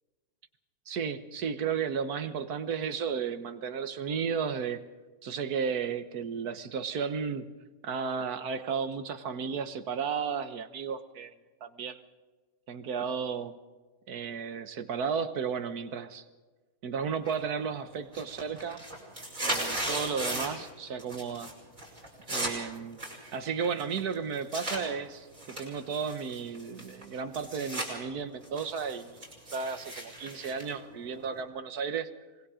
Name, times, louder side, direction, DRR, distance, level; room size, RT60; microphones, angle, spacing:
voice 1, 0.9-4.8 5.2-7.5 7.8-11.3 11.6-12.0 12.7-13.5 14.1-16.2 16.8-18.8 19.4-21.5 22.3-23.0 23.3-29.2 29.5-32.1, right 6 dB, 75° right, 10 dB, 1.7 m, -33 dB
sound 1, 17.3-17.7 18.0-20.7 21.0-21.5 21.8-24.8 25.3-27.9 28.3-31.4, right 1 dB, 55° right, 6.1 m, -37 dB
26.0 x 21.5 x 5.0 m, 1.3 s
omnidirectional pair, 1.7 m